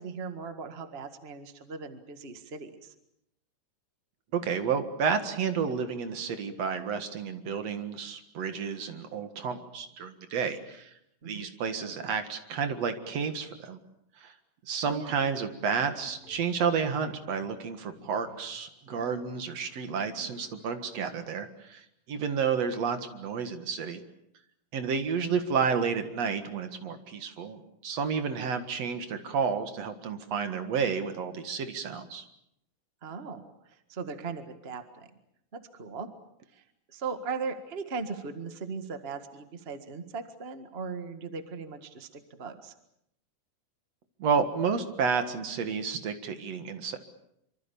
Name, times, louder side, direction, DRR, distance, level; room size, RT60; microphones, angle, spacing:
voice 1, 0.0-2.9 11.2-11.4 14.8-15.1 25.2-25.4 33.0-33.4 33.7-35.1 35.5-36.1 36.5-36.6 36.9-42.7, right 5 dB, 80° right, 8 dB, 0.5 m, -38 dB
voice 2, 4.3-10.9 11.2-13.8 14.2-14.3 14.6-24.0 24.7-32.2 44.2-47.0, right 6 dB, 50° right, 8 dB, 2.4 m, -31 dB
sound 1, 15.9-21.1, left 3 dB, 20° left, 7.6 m, -56 dB
25.5 x 25.0 x 7.0 m, 0.79 s
omnidirectional pair, 4.4 m